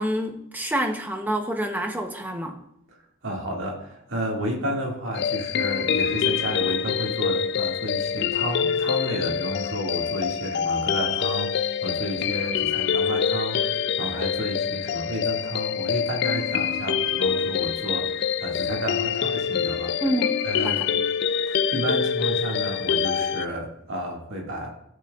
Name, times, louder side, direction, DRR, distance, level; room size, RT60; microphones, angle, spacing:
voice 1, 0.0-2.6 20.0-20.3 20.6-20.8, right 1 dB, 10° right, 4 dB, 0.7 m, -27 dB
voice 2, 2.9-20.0 20.4-20.8 21.5-24.7, equal, 65° right, -1 dB, 2.0 m, -31 dB
sound 1, 5.1-23.5, left 7 dB, 50° left, 0.3 m, -25 dB
13.0 x 7.5 x 2.4 m, 0.78 s
head